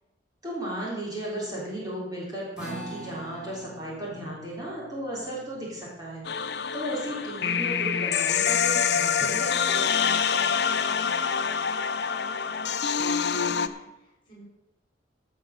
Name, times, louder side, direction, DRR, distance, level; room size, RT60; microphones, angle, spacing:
voice 1, 0.4-10.0, right 1 dB, 20° right, -5 dB, 3.5 m, -35 dB
sound 1, 2.6-9.2, right 1 dB, 5° right, 4.7 m, -46 dB
sound 2, 6.2-13.7, left 7 dB, 60° left, 0.6 m, -26 dB
voice 2, 10.8-14.4, equal, 25° left, -2 dB, 4.6 m, -52 dB
15.0 x 6.3 x 6.4 m, 0.96 s
head